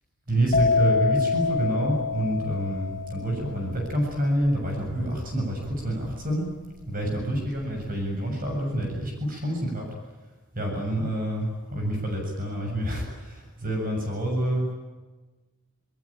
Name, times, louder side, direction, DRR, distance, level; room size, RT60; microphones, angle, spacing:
voice 1, 0.3-6.5 6.9-9.9 10.5-14.7, right 1 dB, 40° right, 1 dB, 7.3 m, -27 dB
sound 1, 0.5-8.1 8.4-8.9, left 5 dB, 35° left, 3.8 m, -27 dB
27.5 x 21.5 x 8.9 m, 1.2 s
head